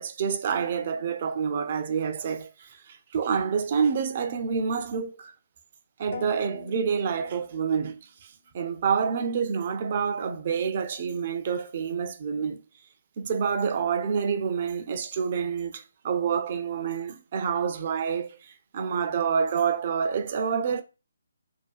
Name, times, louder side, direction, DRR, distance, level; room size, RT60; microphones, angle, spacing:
voice 1, 0.0-5.3 6.0-8.0 8.5-12.6 13.2-18.4 18.7-20.8, right 6 dB, 40° right, 0.4 m, -27 dB
sound 1, 6.1-8.1, left 7 dB, 50° left, 0.4 m, -44 dB
2.5 x 2.2 x 2.3 m
figure-of-eight pair, 140°, 0 cm